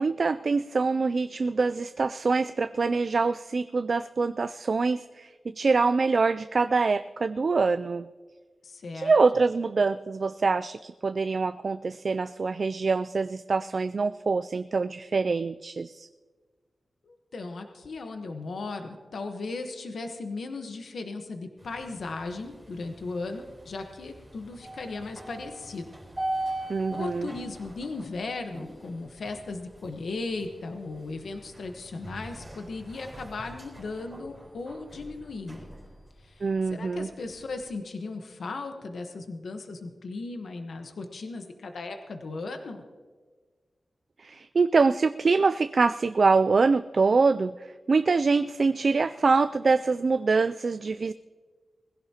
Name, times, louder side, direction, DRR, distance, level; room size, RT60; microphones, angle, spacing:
voice 1, 0.0-8.1 8.9-16.1 26.7-27.3 36.4-37.1 44.2-51.1, right 4 dB, 50° right, 11 dB, 0.3 m, -25 dB
voice 2, 8.6-9.1 17.0-25.9 26.9-35.7 36.2-42.8, left 3 dB, 75° left, 5 dB, 1.1 m, -37 dB
sound 1, 21.6-37.7, right 1 dB, 20° right, 4.1 m, -42 dB
21.0 x 16.0 x 2.9 m, 1.4 s
wide cardioid pair, 115°, 0 cm